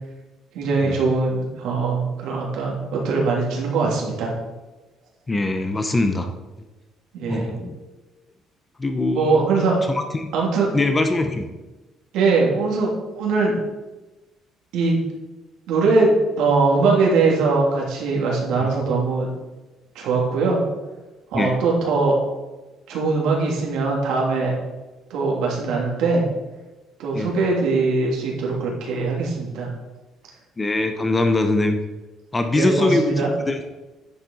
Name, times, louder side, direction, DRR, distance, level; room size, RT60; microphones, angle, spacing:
voice 1, 0.5-4.3 7.1-7.5 9.1-9.8 10.3-10.7 12.1-13.6 14.7-15.0 15.7-19.3 19.9-20.6 21.3-22.2 22.9-24.5 25.1-26.2 27.0-29.7 32.5-33.3, right 3 dB, 75° right, -2 dB, 2.9 m, -21 dB
voice 2, 5.3-6.3 6.6-6.7 7.3-7.8 8.8-9.5 9.9-10.3 10.7-11.5 18.6-18.7 21.3-21.5 27.1-27.3 30.6-31.8 32.3-33.6, left 2 dB, 15° left, 7 dB, 0.7 m, -22 dB
10.5 x 7.5 x 4.0 m, 1.1 s
cardioid pair, 170°, 0 cm